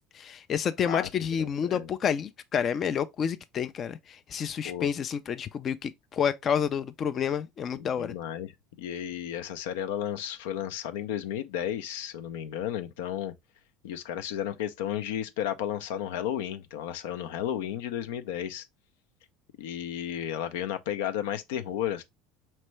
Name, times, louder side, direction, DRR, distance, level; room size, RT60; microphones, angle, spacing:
voice 1, 0.0-8.2, left 8 dB, 35° left, 0.4 m, -29 dB
voice 2, 0.8-1.9 4.6-4.9 7.7-8.5 8.8-13.3 13.8-18.7 19.6-22.0, left 10 dB, 85° left, 0.5 m, -33 dB
4.3 x 3.3 x 3.1 m
supercardioid pair, 125°, 0 cm